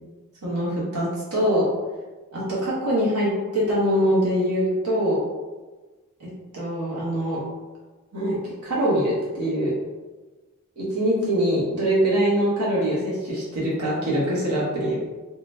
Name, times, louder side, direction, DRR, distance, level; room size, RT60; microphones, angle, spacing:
voice 1, 0.4-1.7 2.3-5.2 6.2-7.4 8.1-9.7 10.8-15.0, equal, 75° right, -7 dB, 1.0 m, -23 dB
3.7 x 2.1 x 2.6 m, 1.2 s
head